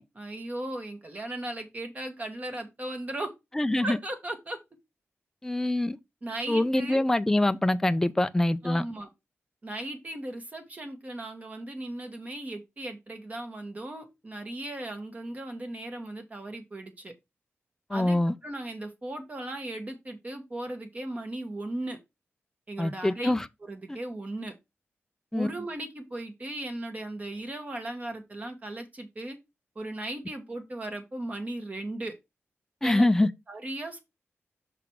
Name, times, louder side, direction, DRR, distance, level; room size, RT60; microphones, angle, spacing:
voice 1, 0.1-3.3 3.8-4.6 6.2-7.0 8.6-9.1 9.6-17.1 17.9-22.0 22.7-23.4 23.7-24.5 25.3-29.4 29.7-32.1 32.8-33.1 33.5-34.0, right 1 dB, 35° right, 1.5 m, -37 dB
voice 2, 3.5-4.0 5.4-6.0 6.5-8.8 17.9-18.3 22.8-23.5 23.9-24.0 25.3-25.5 32.8-33.3, left 1 dB, 10° left, 0.4 m, -24 dB
5.8 x 3.9 x 4.7 m
wide cardioid pair, 95°, 5 cm